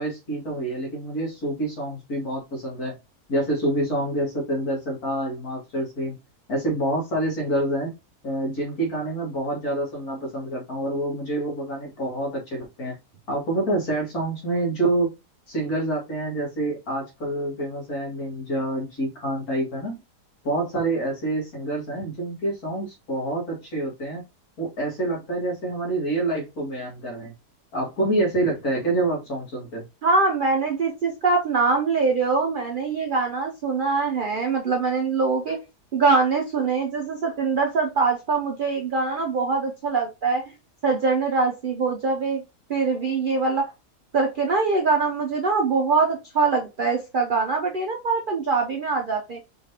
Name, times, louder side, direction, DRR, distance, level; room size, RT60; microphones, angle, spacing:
voice 1, 0.0-3.0 3.3-6.2 6.5-7.9 8.2-13.0 13.3-15.1 15.5-20.0 20.4-24.2 24.6-27.3 27.7-29.8, right 1 dB, 65° left, -2 dB, 2.2 m, -27 dB
voice 2, 30.0-35.6 35.9-40.4 40.8-42.4 42.7-43.7 44.1-49.4, right 4 dB, 70° right, 2 dB, 0.5 m, -23 dB
4.3 x 3.2 x 2.8 m, 0.25 s
omnidirectional pair, 1.7 m